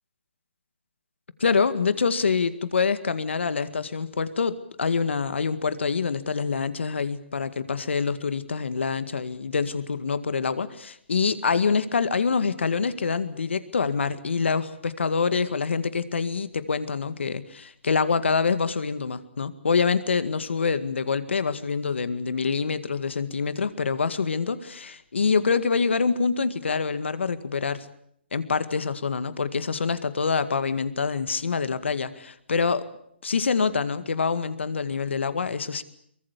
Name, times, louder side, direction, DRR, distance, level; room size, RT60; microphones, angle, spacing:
voice 1, 1.4-27.9 28.3-32.9 33.2-35.8, left 5 dB, 80° left, 13 dB, 2.0 m, -26 dB
23.0 x 21.0 x 8.4 m, 0.69 s
hypercardioid pair, 160°, 6 cm